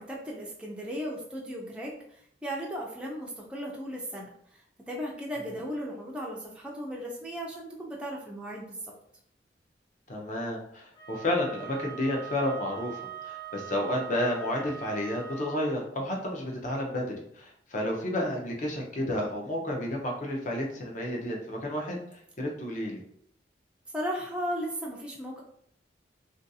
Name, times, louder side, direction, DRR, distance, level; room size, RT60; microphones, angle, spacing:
voice 1, 0.0-8.9 23.9-25.4, equal, 5° right, -3 dB, 0.3 m, -36 dB
voice 2, 10.1-17.0 17.3-22.0 22.4-23.0, left 1 dB, 40° left, 0 dB, 0.6 m, -31 dB
Wind instrument woodwind instrument, 10.9-15.7, right 8 dB, 25° left, 0.9 m, -42 dB
2.5 x 2.3 x 2.6 m, 0.68 s
head